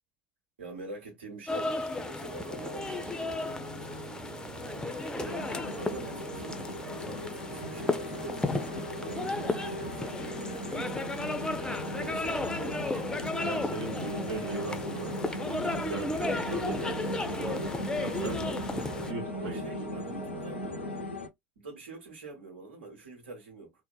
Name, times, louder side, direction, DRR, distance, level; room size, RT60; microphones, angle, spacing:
voice 1, 0.6-3.4 3.7-4.4 5.1-5.4 5.7-10.1 10.7-11.1 12.0-12.3 17.4-17.8 19.3-20.6 21.6-23.7, right 3 dB, 75° right, 1.2 m, -45 dB
sound 1, 1.5-19.1, left 3 dB, 10° left, 0.4 m, -35 dB
sound 2, 1.6-21.0, right 1 dB, 45° right, 1.1 m, -43 dB
sound 3, 5.3-21.3, equal, 90° left, 0.4 m, -38 dB
voice 2, 13.4-17.5 18.0-18.4 19.1-19.6, right 3 dB, 60° right, 0.7 m, -39 dB
2.7 x 2.0 x 2.2 m
figure-of-eight pair, 70°, 6 cm